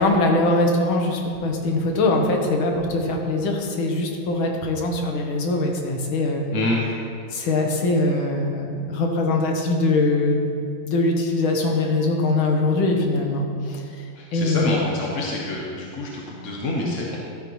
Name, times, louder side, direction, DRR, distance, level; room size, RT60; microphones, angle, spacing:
voice 1, 0.0-6.6 7.3-14.0 14.3-14.8, left 2 dB, 85° left, 2 dB, 1.9 m, -22 dB
voice 2, 14.2-17.2, left 2 dB, 50° left, -3 dB, 1.1 m, -27 dB
12.5 x 8.8 x 3.1 m, 2.3 s
omnidirectional pair, 2.2 m